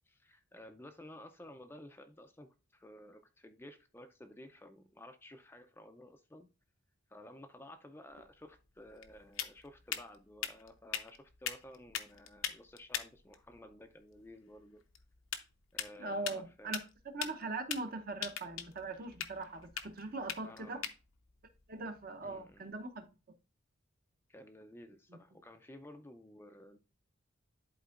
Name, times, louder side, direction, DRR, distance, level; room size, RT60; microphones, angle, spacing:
voice 1, 0.0-6.5 7.1-14.8 15.7-16.7 20.4-20.8 22.2-22.6 24.3-26.8, left 1 dB, 10° left, 0.4 m, -54 dB
sound 1, 8.1-22.8, left 9 dB, 80° left, 0.7 m, -44 dB
voice 2, 16.0-20.9 21.7-23.1, right 3 dB, 45° right, 0.8 m, -41 dB
11.0 x 4.3 x 2.4 m
head